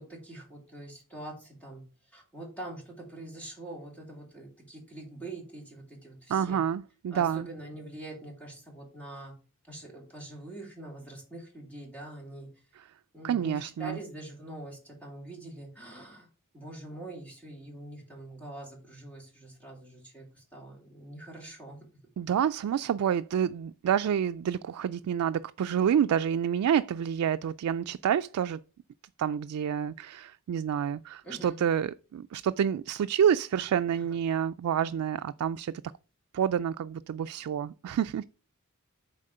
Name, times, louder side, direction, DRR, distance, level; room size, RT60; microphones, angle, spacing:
voice 1, 0.0-1.8 2.1-6.6 7.1-9.3 9.7-12.5 13.1-16.3 16.5-21.8 31.2-31.6 33.9-34.0, right 1 dB, 5° left, 3.0 m, -44 dB
voice 2, 6.3-7.5 13.2-14.0 22.2-28.6 29.2-35.7 36.3-38.2, right 8 dB, 85° right, 0.3 m, -28 dB
7.3 x 4.2 x 6.5 m
head